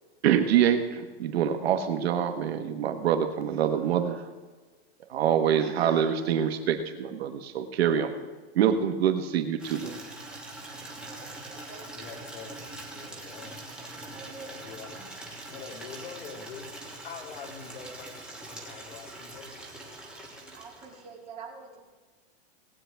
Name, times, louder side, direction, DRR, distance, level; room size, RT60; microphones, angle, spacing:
voice 1, 0.2-4.3 5.1-8.1 8.5-10.0, right 9 dB, 70° right, 7 dB, 1.3 m, -25 dB
Water tap faucet / Liquid, 9.6-21.2, right 2 dB, 5° right, 1.3 m, -43 dB
voice 2, 10.9-12.2 14.1-14.6 20.4-21.9, right 4 dB, 20° right, -1 dB, 2.1 m, -47 dB
voice 3, 12.0-13.6 14.4-15.0 15.5-16.8 17.0-19.7, left 5 dB, 65° left, 0 dB, 2.3 m, -45 dB
19.0 x 8.9 x 3.4 m, 1.3 s
supercardioid pair, 165°, 32 cm